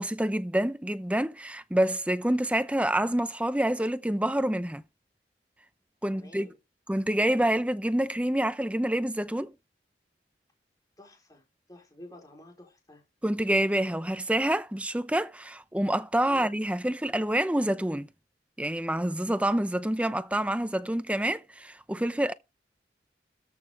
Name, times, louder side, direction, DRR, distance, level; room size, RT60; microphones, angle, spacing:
voice 1, 0.0-4.8 6.0-6.5 6.9-9.5 13.2-18.1 18.6-22.3, right 1 dB, 5° right, 0.6 m, -27 dB
voice 2, 6.1-6.6 11.0-13.0 16.2-16.5, left 1 dB, 20° left, 4.5 m, -50 dB
13.5 x 6.3 x 5.0 m
head